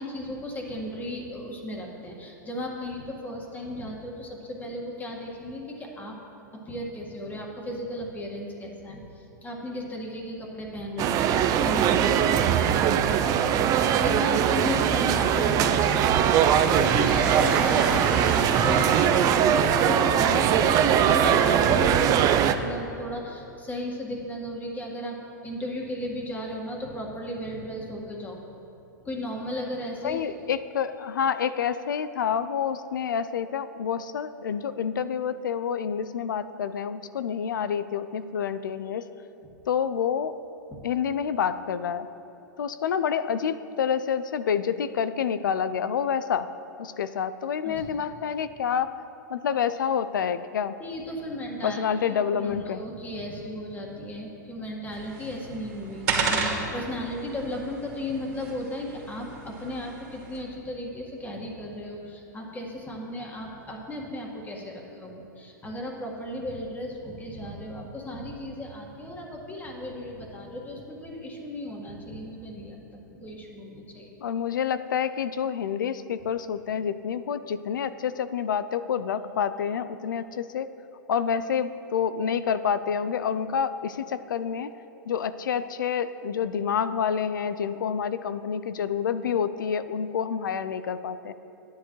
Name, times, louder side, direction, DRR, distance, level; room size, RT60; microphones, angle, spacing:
voice 1, 0.0-6.2 6.5-19.1 19.4-28.4 29.0-30.2 40.7-40.8 47.6-48.0 50.8-51.8 52.1-74.1, left 1 dB, 15° left, -1 dB, 1.8 m, -35 dB
sound 1, 11.0-22.5, right 9 dB, 35° right, 0.5 m, -21 dB
sound 2, 14.5-21.5, right 2 dB, 10° right, 0.9 m, -36 dB
voice 2, 30.0-39.0 39.7-40.3 40.8-42.1 42.6-46.5 46.8-48.9 49.3-50.7 51.6-52.8 74.2-80.7 81.1-84.7 85.1-91.3, left 7 dB, 80° left, 13 dB, 0.4 m, -28 dB
sound 3, 54.9-60.4, right 4 dB, 55° right, 2.1 m, -33 dB
13.0 x 10.0 x 3.1 m, 2.9 s
hypercardioid pair, 110°, 10 cm